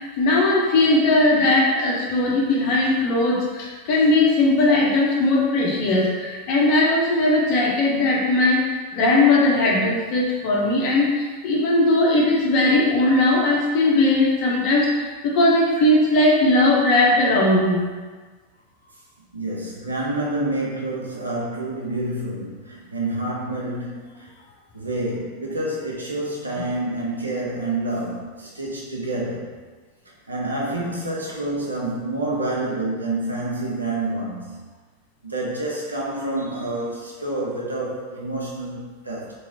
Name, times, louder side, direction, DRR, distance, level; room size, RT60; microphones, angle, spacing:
voice 1, 0.0-8.6 8.9-17.8, left 2 dB, 45° left, -3 dB, 0.8 m, -19 dB
voice 2, 19.3-24.3 24.7-29.5 30.3-34.6 35.2-39.3, right 2 dB, 80° right, -4 dB, 0.7 m, -28 dB
3.0 x 2.8 x 2.7 m, 1.4 s
figure-of-eight pair, 90°, 0 cm